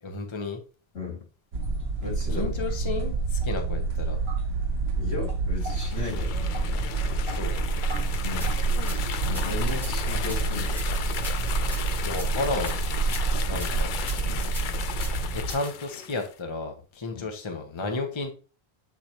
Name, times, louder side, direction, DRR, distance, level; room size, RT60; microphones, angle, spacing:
voice 1, 0.0-0.6 2.3-4.2 7.2-7.6 12.0-12.8 13.5-13.9 15.3-18.3, left 3 dB, 30° left, 4 dB, 0.9 m, -32 dB
sound 1, 1.5-15.5, right 4 dB, 75° right, 1.0 m, -28 dB
voice 2, 2.0-2.8 4.9-6.4 8.2-8.6 8.9-10.8 14.2-14.5 17.1-17.2, left 4 dB, 80° left, -3 dB, 2.6 m, -36 dB
sound 2, 5.5-16.3, left 8 dB, 60° left, 0.6 m, -35 dB
sound 3, 8.4-8.5 8.9-9.0 9.3-9.5 9.8-9.9 10.3-10.9 11.2-11.3 11.7-12.3 12.7-12.8 13.1-13.2 13.6-13.7 14.1-14.7 15.0-15.1 15.5-15.7, equal, ahead, 0.9 m, -41 dB
8.3 x 3.9 x 2.9 m, 0.35 s
omnidirectional pair, 1.1 m